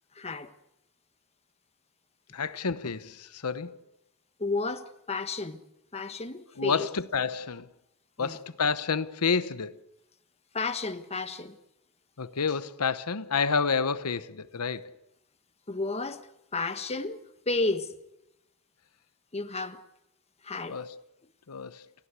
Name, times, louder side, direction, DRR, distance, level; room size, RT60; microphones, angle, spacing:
voice 1, 0.2-0.5 4.4-5.6 5.9-6.9 8.2-8.4 10.5-11.6 15.7-16.2 16.5-17.2 17.5-17.9 19.3-19.8 20.4-20.8, left 3 dB, 30° left, 1.3 m, -32 dB
voice 2, 2.3-3.8 6.6-7.7 8.2-9.8 12.2-14.9 20.7-21.0 21.5-21.8, left 5 dB, 90° left, 1.0 m, -29 dB
30.0 x 16.0 x 8.2 m
head